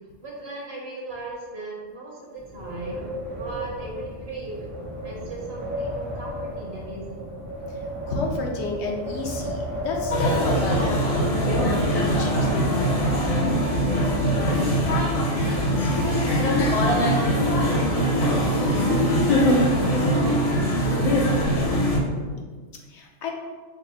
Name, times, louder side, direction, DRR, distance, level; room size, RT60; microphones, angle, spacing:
voice 1, 0.2-4.6 5.0-7.3 13.9-14.9 15.3-17.0 17.4-22.3, right 2 dB, 60° right, -3 dB, 1.2 m, -38 dB
Wind, 2.4-15.0, equal, 90° right, 1.5 m, -33 dB
voice 2, 7.7-13.0 22.9-23.3, left 3 dB, 70° left, 0 dB, 0.9 m, -32 dB
sound 1, 10.1-22.0, equal, 45° left, 0.5 m, -22 dB
5.1 x 2.0 x 4.1 m, 1.4 s
omnidirectional pair, 1.2 m